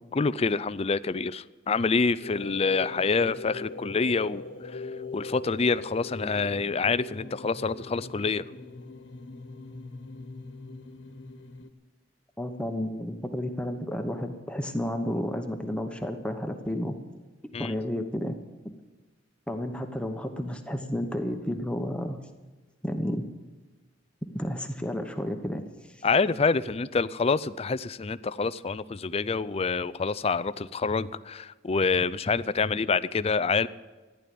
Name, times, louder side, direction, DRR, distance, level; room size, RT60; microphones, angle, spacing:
voice 1, 0.1-4.8 5.1-8.4 17.5-17.7 26.0-33.7, left 4 dB, 35° left, 16 dB, 0.5 m, -27 dB
sound 1, 2.2-11.7, left 3 dB, 80° left, 1.5 m, -41 dB
voice 2, 12.4-16.9 17.6-18.3 19.5-22.2 22.8-23.2 24.3-25.6, equal, 5° left, 5 dB, 1.1 m, -31 dB
15.0 x 11.0 x 8.5 m, 1.3 s
head